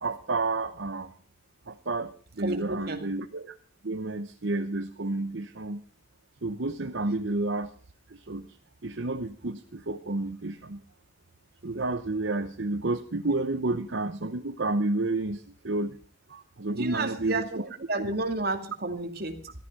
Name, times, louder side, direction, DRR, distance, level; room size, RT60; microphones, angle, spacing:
voice 1, 0.0-1.1 1.7-3.5 3.8-5.8 6.4-7.7 8.1-8.5 8.8-10.8 11.6-16.0 16.3-17.7, right 2 dB, 75° right, 7 dB, 0.9 m, -30 dB
voice 2, 2.4-3.0 16.7-19.5, right 2 dB, 55° right, 5 dB, 2.4 m, -31 dB
14.5 x 13.5 x 5.4 m, 0.40 s
head